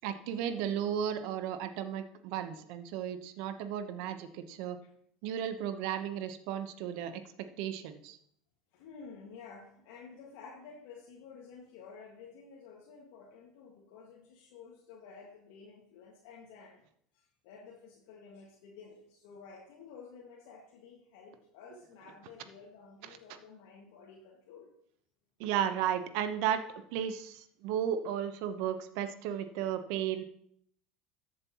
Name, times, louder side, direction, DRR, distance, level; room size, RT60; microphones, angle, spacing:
voice 1, 0.0-4.8 5.2-8.2 25.4-26.6 26.9-30.2, right 9 dB, 70° right, 10 dB, 1.0 m, -34 dB
voice 2, 8.7-16.8 17.1-24.7, left 5 dB, 75° left, -3 dB, 1.9 m, -52 dB
13.5 x 7.7 x 3.0 m, 0.68 s
supercardioid pair, 95°, 0 cm